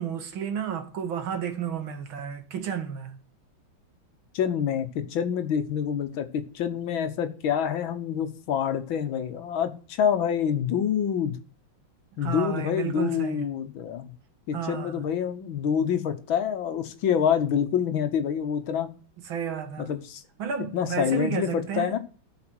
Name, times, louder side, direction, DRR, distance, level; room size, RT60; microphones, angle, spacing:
voice 1, 0.0-3.1 12.2-13.5 14.5-15.0 19.2-19.9 20.4-22.0, right 8 dB, 75° right, 2.3 m, -32 dB
voice 2, 4.3-11.4 12.2-14.1 14.5-18.9 19.8-20.2 20.7-22.0, left 8 dB, 75° left, 1.8 m, -27 dB
13.0 x 5.2 x 6.1 m
omnidirectional pair, 2.2 m